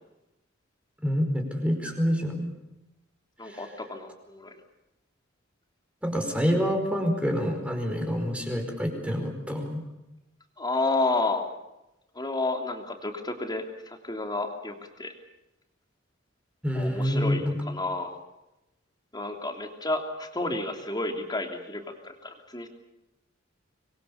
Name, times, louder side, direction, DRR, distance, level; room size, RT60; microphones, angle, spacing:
voice 1, 1.0-2.5 3.4-3.6 6.0-9.8 16.6-17.6, equal, 5° right, 3 dB, 5.0 m, -27 dB
voice 2, 3.4-4.5 10.6-11.5 12.1-15.1 16.7-18.2 19.1-22.7, left 2 dB, 20° left, 4 dB, 3.1 m, -31 dB
26.0 x 22.5 x 7.1 m, 0.94 s
head